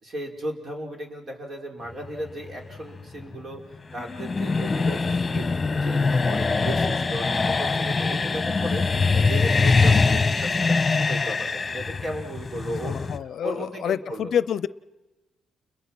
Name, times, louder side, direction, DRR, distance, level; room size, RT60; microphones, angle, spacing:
voice 1, 0.0-3.6 3.9-5.5 5.8-14.3, equal, 45° right, 2 dB, 5.4 m, -35 dB
sound 1, 2.0-13.2, left 4 dB, 25° left, 1.5 m, -23 dB
voice 2, 12.8-14.7, left 9 dB, 65° left, 17 dB, 0.7 m, -27 dB
29.5 x 22.0 x 6.2 m, 1.1 s
cardioid pair, 90°, 0 cm